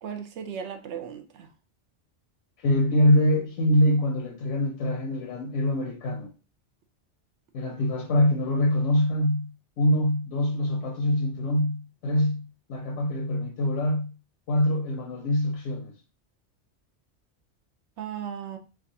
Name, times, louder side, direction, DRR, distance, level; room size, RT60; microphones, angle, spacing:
voice 1, 0.0-1.5 18.0-18.6, right 8 dB, 75° right, 0.9 m, -36 dB
voice 2, 2.6-6.3 7.5-9.5 9.8-14.1 14.5-15.9, left 1 dB, 85° left, 1.0 m, -24 dB
4.5 x 2.3 x 2.7 m
omnidirectional pair, 1.2 m